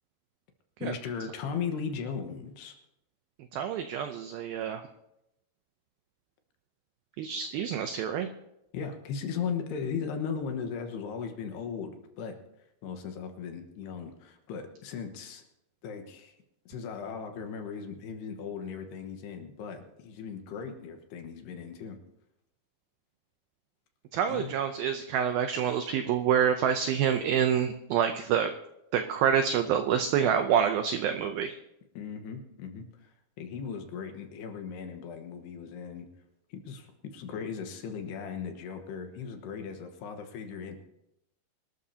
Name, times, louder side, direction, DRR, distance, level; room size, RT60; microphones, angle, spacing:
voice 1, 0.8-2.8 8.7-12.4 12.8-15.4 15.8-16.3 16.7-22.0 24.3-24.5 31.9-36.1 36.5-40.8, left 6 dB, 75° left, 5 dB, 3.2 m, -37 dB
voice 2, 3.5-4.8 7.2-8.3 24.1-28.5 28.9-31.5, right 8 dB, 90° right, 7 dB, 2.1 m, -27 dB
24.0 x 13.0 x 2.8 m, 0.85 s
omnidirectional pair, 5.1 m